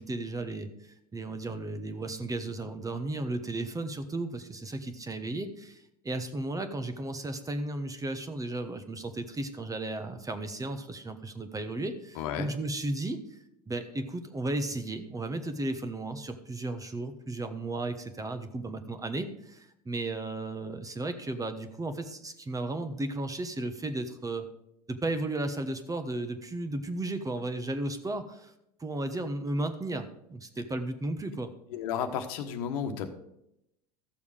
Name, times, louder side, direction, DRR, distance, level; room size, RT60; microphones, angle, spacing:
voice 1, 0.0-13.4 13.7-24.5 24.9-28.5 28.8-31.5, right 2 dB, 15° right, 9 dB, 1.1 m, -34 dB
voice 2, 12.1-12.5 31.7-33.1, left 8 dB, 65° left, 6 dB, 1.3 m, -32 dB
13.5 x 6.9 x 4.9 m, 0.81 s
hypercardioid pair, 75°, 20 cm